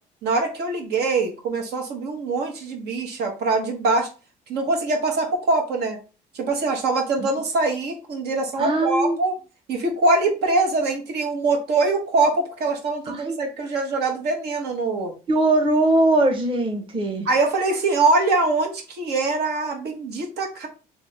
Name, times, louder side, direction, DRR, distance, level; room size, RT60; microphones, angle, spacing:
voice 1, 0.2-4.1 4.5-6.0 6.3-9.3 9.7-15.1 17.2-20.7, right 3 dB, 70° right, 1 dB, 1.1 m, -23 dB
voice 2, 8.6-9.2 13.1-13.4 15.3-17.3, right 2 dB, 30° right, 3 dB, 0.9 m, -21 dB
3.4 x 3.0 x 3.3 m, 0.33 s
cardioid pair, 110°, 17 cm